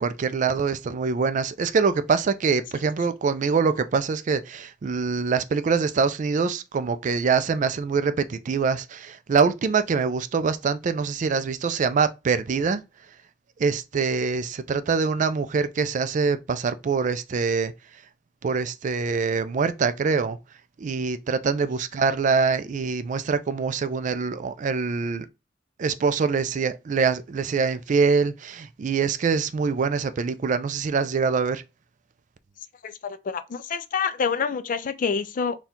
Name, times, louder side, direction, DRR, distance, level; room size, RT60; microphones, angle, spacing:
voice 1, 0.0-12.8 13.6-17.7 18.4-20.4 20.8-25.3 25.8-31.6, right 5 dB, 45° right, 0.3 m, -24 dB
voice 2, 32.8-35.6, left 6 dB, 45° left, 0.4 m, -27 dB
4.3 x 2.3 x 3.6 m
head